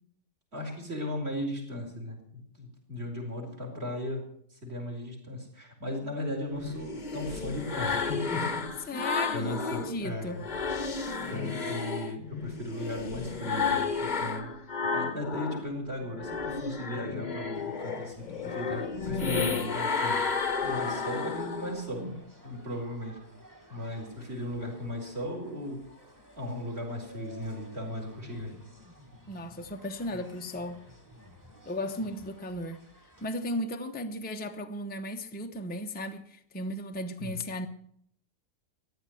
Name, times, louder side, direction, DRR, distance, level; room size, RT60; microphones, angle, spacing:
voice 1, 0.5-4.2 4.5-8.6 8.9-9.0 9.3-10.4 11.3-14.5 14.9-20.2 20.6-22.1 22.4-23.2 23.7-25.8 26.4-28.5 37.2-37.4, left 1 dB, 40° right, 4.7 m, -36 dB
sound 1, 6.5-9.9 10.3-15.6 16.0-21.9, left 5 dB, 30° left, 1.1 m, -32 dB
voice 2, 8.9-10.4 29.3-30.8 31.7-32.9 33.2-37.7, left 1 dB, 5° left, 0.8 m, -35 dB
sound 2, 17.5-33.3, equal, 10° right, 2.2 m, -53 dB
14.5 x 10.5 x 7.9 m
omnidirectional pair, 1.7 m